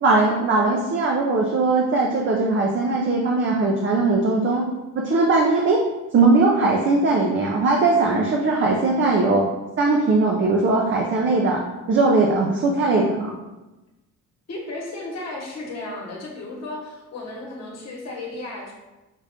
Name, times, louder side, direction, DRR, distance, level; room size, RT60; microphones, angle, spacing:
voice 1, 0.0-4.6 5.0-5.8 6.1-9.4 9.8-11.6 11.9-13.3, right 3 dB, 40° right, -1 dB, 0.4 m, -19 dB
voice 2, 14.5-18.7, left 2 dB, 55° left, -2 dB, 1.1 m, -34 dB
5.6 x 2.4 x 3.5 m, 1.1 s
wide cardioid pair, 175°, 32 cm